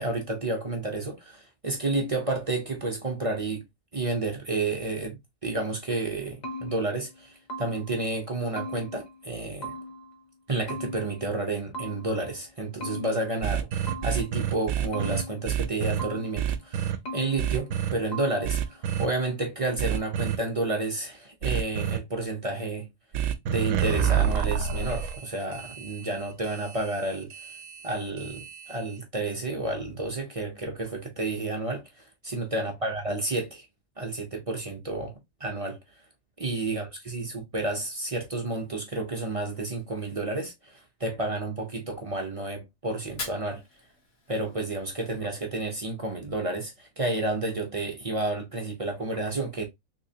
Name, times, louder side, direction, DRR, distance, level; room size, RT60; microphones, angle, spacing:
voice 1, 0.0-3.6 3.9-9.7 10.5-22.9 23.5-27.3 27.8-33.7 34.0-35.8 36.4-43.6 44.3-49.7, right 2 dB, 35° right, 0.6 m, -31 dB
sound 1, 5.9-8.1 8.6-10.2 10.7-12.3 12.8-14.4 14.9-16.6 17.0-17.9 18.1-18.7, equal, 45° left, 0.6 m, -39 dB
sound 2, 13.4-16.0 16.4-17.0 17.4-17.9 18.4-19.1 19.8-20.4 21.4-22.0 23.1-29.0, right 9 dB, 70° right, 0.9 m, -29 dB
Fire, 43.0-45.0, left 3 dB, 75° left, 1.8 m, -42 dB
3.4 x 3.2 x 2.7 m
omnidirectional pair, 1.4 m